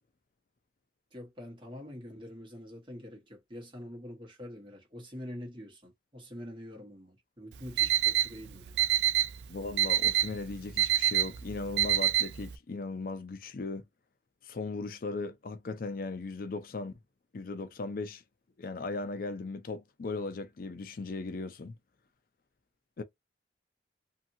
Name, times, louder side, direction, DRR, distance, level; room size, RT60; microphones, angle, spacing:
voice 1, 1.1-8.8, left 1 dB, 30° right, 1.3 m, -45 dB
Alarm, 7.5-12.5, right 12 dB, 75° right, 0.4 m, -27 dB
voice 2, 9.5-13.8 14.4-17.0 17.3-18.2 18.6-21.7 23.0-23.1, left 3 dB, 55° left, 0.4 m, -37 dB
2.8 x 2.6 x 2.6 m
head